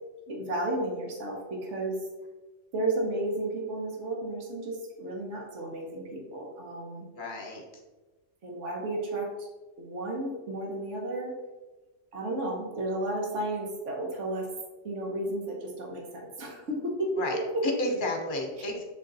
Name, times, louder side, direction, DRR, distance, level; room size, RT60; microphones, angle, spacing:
voice 1, 0.3-2.0 2.7-7.1 8.4-9.5 9.8-11.3 12.1-14.5 14.8-17.1 17.5-17.6, right 1 dB, 80° right, -1 dB, 1.4 m, -33 dB
voice 2, 7.1-7.6 17.2-18.8, left 1 dB, 45° left, 2 dB, 1.2 m, -32 dB
6.3 x 3.8 x 4.0 m, 1.2 s
omnidirectional pair, 1.2 m